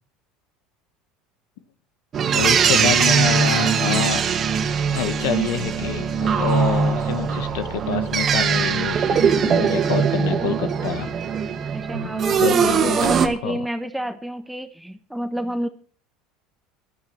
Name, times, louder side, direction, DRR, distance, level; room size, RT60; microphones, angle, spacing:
sound 1, 2.1-13.3, right 7 dB, 40° right, 1.9 m, -21 dB
voice 1, 2.3-4.2 4.9-11.1 11.9-13.6, left 9 dB, 75° left, 11 dB, 1.3 m, -27 dB
voice 2, 11.7-15.7, right 1 dB, 5° right, 8 dB, 1.3 m, -28 dB
16.0 x 11.0 x 4.4 m, 0.42 s
hypercardioid pair, 90°, 0 cm